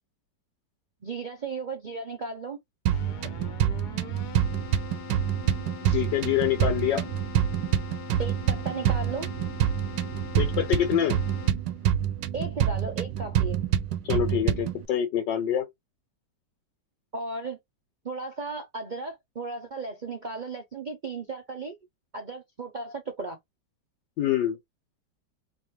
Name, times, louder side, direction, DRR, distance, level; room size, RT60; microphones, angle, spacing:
voice 1, 1.0-2.6 8.2-9.3 12.3-13.6 17.1-17.6 18.0-21.8 22.1-23.4, right 3 dB, 60° right, 0.4 m, -35 dB
Keyboard (musical), 2.9-11.9, left 10 dB, 65° left, 1.4 m, -42 dB
sound 1, 2.9-14.9, right 10 dB, 80° right, 1.3 m, -27 dB
voice 2, 5.8-7.0 10.4-11.2 14.1-15.7 24.2-24.6, left 10 dB, 85° left, 1.5 m, -25 dB
4.1 x 3.1 x 3.1 m
omnidirectional pair, 1.9 m